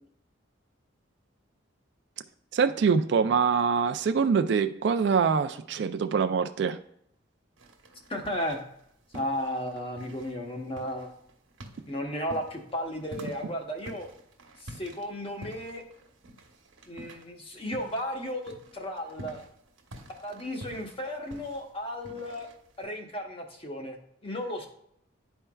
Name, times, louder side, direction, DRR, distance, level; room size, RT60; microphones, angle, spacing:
voice 1, 2.5-6.8, right 6 dB, 60° right, 8 dB, 0.3 m, -24 dB
sound 1, 7.6-8.8 9.1-18.1 18.4-22.9, right 1 dB, 90° right, 1.1 m, -48 dB
voice 2, 8.1-8.6 9.1-11.1 11.9-14.1 14.6-15.8 16.9-19.4 20.2-22.5 22.8-24.0 24.2-24.7, equal, 30° left, 2 dB, 0.9 m, -34 dB
11.0 x 4.4 x 2.3 m, 0.70 s
head